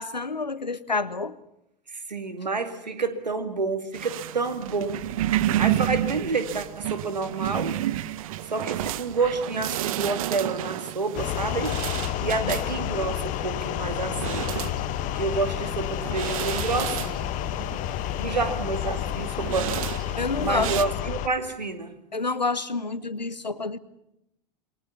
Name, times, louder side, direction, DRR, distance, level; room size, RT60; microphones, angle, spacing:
voice 1, 0.0-1.4 12.4-12.6 18.2-18.5 20.2-20.8 22.1-23.8, left 3 dB, 85° left, 16 dB, 1.1 m, -29 dB
voice 2, 1.9-5.1 5.6-7.8 8.4-11.8 12.2-14.4 15.1-17.3 18.2-19.8 20.4-22.0, right 4 dB, 80° right, 9 dB, 2.3 m, -29 dB
sound 1, 3.9-20.8, right 13 dB, 55° right, 1.0 m, -31 dB
sound 2, 11.2-21.3, left 13 dB, 40° left, 1.3 m, -30 dB
28.0 x 22.0 x 7.1 m, 0.84 s
figure-of-eight pair, 90°, 21 cm